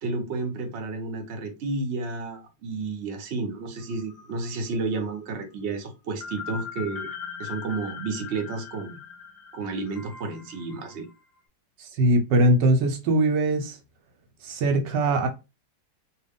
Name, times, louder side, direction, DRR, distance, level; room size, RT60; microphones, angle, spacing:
voice 1, 0.0-7.1 7.4-9.0 9.5-11.1, right 3 dB, 50° right, 0.9 m, -31 dB
sound 1, 3.8-4.7 4.9-5.0 6.2-11.1, left 6 dB, 80° left, 0.5 m, -40 dB
voice 2, 11.8-13.8 14.4-15.3, right 1 dB, 80° right, 1.3 m, -21 dB
2.9 x 2.7 x 3.5 m
omnidirectional pair, 1.9 m